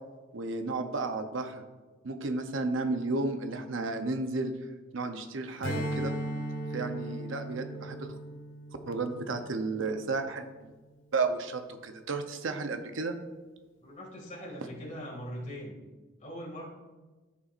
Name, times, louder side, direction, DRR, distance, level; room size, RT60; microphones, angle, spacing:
voice 1, 0.3-1.6 2.0-6.1 6.7-8.2 8.9-10.7 11.1-13.2, right 3 dB, 70° right, 7 dB, 0.7 m, -33 dB
Strum, 5.6-10.4, right 1 dB, 70° left, 1.3 m, -37 dB
voice 2, 13.8-15.8 16.2-16.7, equal, 40° left, -1 dB, 2.3 m, -41 dB
14.0 x 5.8 x 2.5 m, 1.2 s
head